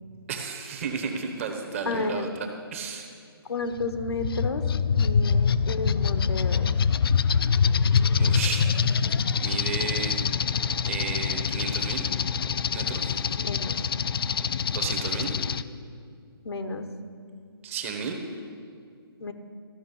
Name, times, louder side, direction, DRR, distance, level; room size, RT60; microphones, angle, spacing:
voice 1, 0.3-2.3 2.7-3.1 8.0-9.1 9.4-10.2 10.8-12.0 12.7-13.2 14.3-15.3 17.6-18.2, right 6 dB, 30° right, 4 dB, 1.2 m, -33 dB
voice 2, 1.9-2.4 3.5-6.7 13.4-13.8 16.4-16.9 19.2-19.3, left 3 dB, 90° left, 8 dB, 1.0 m, -32 dB
sound 1, 3.8-15.6, left 6 dB, 65° left, 0.4 m, -25 dB
13.5 x 5.9 x 7.1 m, 2.2 s
hypercardioid pair, 160°, 13 cm